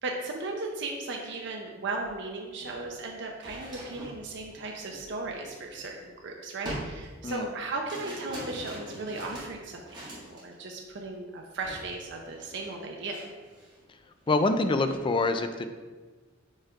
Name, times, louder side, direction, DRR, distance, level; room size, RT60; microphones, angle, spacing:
voice 1, 0.0-13.2, right 3 dB, 60° right, 1 dB, 0.6 m, -36 dB
sound 1, 2.0-2.1 2.5-6.1 6.6-10.5 10.9-11.2 11.6-11.9 12.1-13.8 14.2-15.0, right 1 dB, 20° right, 1.8 m, -43 dB
voice 2, 14.3-15.7, left 2 dB, 25° left, 8 dB, 0.4 m, -25 dB
5.3 x 3.6 x 5.0 m, 1.4 s
head